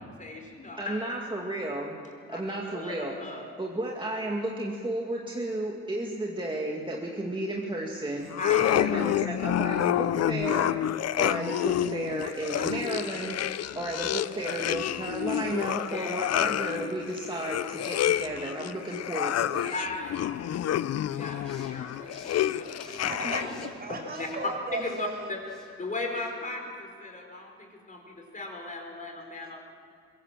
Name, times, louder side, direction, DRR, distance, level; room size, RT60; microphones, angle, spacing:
voice 1, 0.0-1.2 2.3-2.4 2.7-3.4 8.4-9.0 12.6-13.0 15.9-16.2 19.7-20.7 21.0-23.6 23.9-24.3 24.7-25.4 25.8-29.6, left 2 dB, 25° left, 2 dB, 4.6 m, -38 dB
voice 2, 0.8-2.0 2.3-3.1 3.6-8.3 8.7-10.7 11.2-13.4 13.8-19.7, right 1 dB, 15° right, -1 dB, 2.2 m, -33 dB
sound 1, 8.3-23.7, left 11 dB, 55° left, 0.6 m, -29 dB
sound 2, 21.3-26.4, equal, ahead, 5.3 m, -55 dB
voice 3, 23.1-25.3, right 2 dB, 30° right, 3 dB, 4.9 m, -36 dB
22.5 x 17.0 x 7.5 m, 2.4 s
cardioid pair, 90°, 30 cm